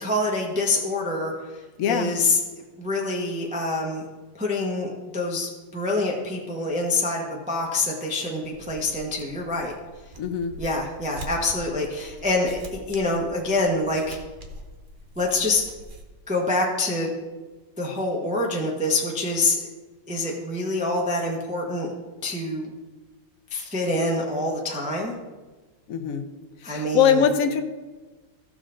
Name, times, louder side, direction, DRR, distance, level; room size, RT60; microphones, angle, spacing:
voice 1, 0.0-2.4 2.8-4.0 4.4-9.7 10.6-14.2 15.2-15.6 16.3-17.1 17.8-19.6 20.1-21.9 22.2-22.7 23.5-25.1 26.6-27.2, left 2 dB, 5° right, -2 dB, 0.6 m, -26 dB
voice 2, 1.8-2.1 10.2-10.5 25.9-26.3 26.6-27.6, left 8 dB, 65° left, 6 dB, 0.8 m, -22 dB
sound 1, 8.4-16.0, right 1 dB, 70° right, 0.4 m, -43 dB
15.0 x 6.3 x 3.8 m, 1.3 s
omnidirectional pair, 2.4 m